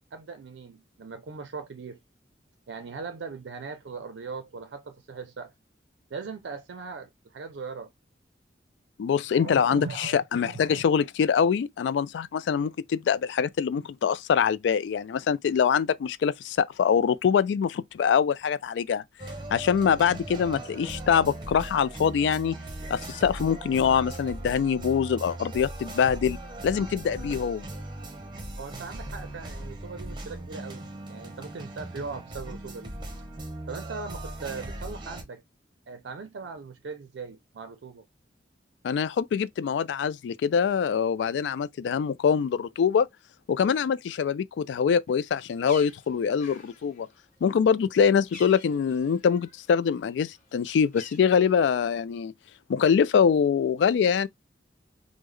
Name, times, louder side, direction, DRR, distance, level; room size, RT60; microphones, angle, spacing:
voice 1, 0.1-2.0 2.7-5.5 6.1-7.9 9.3-10.8 28.6-32.9 33.7-35.4 35.9-38.0, right 4 dB, 80° right, 0.4 m, -39 dB
voice 2, 9.0-19.0 19.5-22.6 22.9-26.4 26.6-27.7 38.8-43.1 43.5-47.1 47.4-52.3 52.7-54.3, left 7 dB, 75° left, 0.3 m, -24 dB
sound 1, 19.2-35.2, right 1 dB, 25° right, 0.8 m, -39 dB
Bird, 45.1-49.7 50.0-51.9, left 4 dB, 45° left, 1.0 m, -49 dB
3.6 x 2.1 x 3.1 m
head